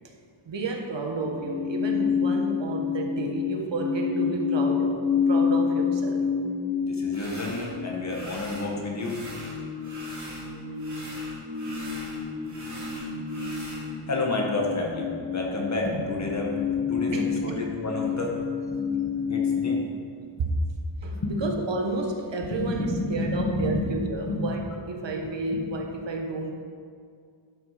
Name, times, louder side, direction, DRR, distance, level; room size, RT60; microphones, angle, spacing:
voice 1, 0.5-6.3 17.1-17.3 20.4-20.5 21.0-26.5, right 3 dB, 60° right, 2 dB, 1.3 m, -31 dB
sound 1, 1.2-19.7, left 6 dB, 5° right, 2.5 m, -29 dB
voice 2, 6.8-9.2 11.4-11.5 14.1-19.8 20.4-20.5 21.0-21.5 22.5-23.9 24.3-24.6 25.5-25.6, left 2 dB, 35° left, -1 dB, 1.5 m, -30 dB
sound 2, 7.1-7.7 8.1-8.7 9.0-10.5 10.7-13.8, right 1 dB, 35° right, 3.0 m, -42 dB
12.0 x 7.0 x 5.1 m, 2.2 s
wide cardioid pair, 170°, 49 cm